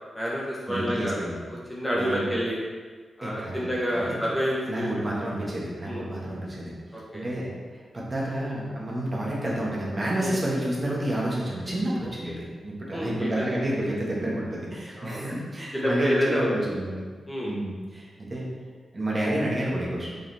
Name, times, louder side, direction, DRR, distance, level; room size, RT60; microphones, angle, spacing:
voice 1, 0.1-1.2 1.7-2.6 3.2-4.9 5.8-6.0 6.9-7.2 10.2-10.4 12.2-12.4 12.9-13.4 15.0-15.3 15.7-16.5 17.3-17.5, equal, 15° left, -6 dB, 1.5 m, -28 dB
voice 2, 0.7-1.4 2.0-2.3 3.2-4.3 4.7-6.7 7.1-17.1 17.4-18.5 18.9-20.1, right 1 dB, 30° right, -5 dB, 1.8 m, -30 dB
6.9 x 5.3 x 3.6 m, 1.5 s
wide cardioid pair, 110°, 0 cm